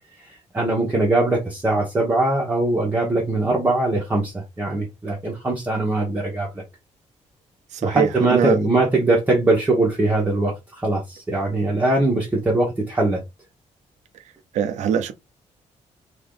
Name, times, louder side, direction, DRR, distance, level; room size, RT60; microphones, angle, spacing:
voice 1, 0.2-6.6 7.8-13.2, right 2 dB, 15° right, 0.9 m, -21 dB
voice 2, 7.7-8.6 14.5-15.1, right 8 dB, 80° right, 0.5 m, -23 dB
3.5 x 2.9 x 3.7 m
cardioid pair, 175°, 12 cm